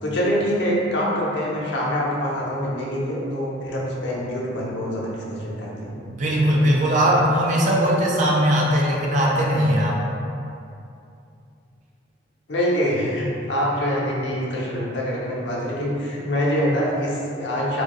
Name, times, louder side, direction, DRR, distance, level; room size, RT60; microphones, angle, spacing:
voice 1, 0.0-6.0 12.5-17.8, equal, 80° left, -4 dB, 0.7 m, -25 dB
voice 2, 6.0-10.0, equal, 45° right, -3 dB, 0.5 m, -19 dB
4.4 x 2.3 x 3.0 m, 2.6 s
head